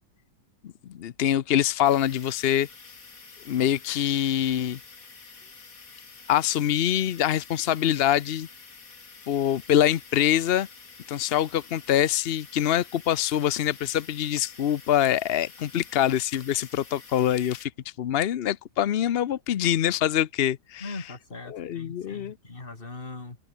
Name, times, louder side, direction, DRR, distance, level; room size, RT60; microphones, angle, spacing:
voice 1, 0.6-2.7 3.5-4.8 6.3-8.5 9.3-10.7 11.1-17.7 18.0-21.0 21.5-22.3, left 11 dB, 75° left, 0.5 m, -24 dB
sound 1, 1.8-17.7, left 4 dB, 50° left, 2.9 m, -48 dB
voice 2, 20.8-23.4, left 3 dB, 30° left, 3.0 m, -40 dB
open air
omnidirectional pair, 1.9 m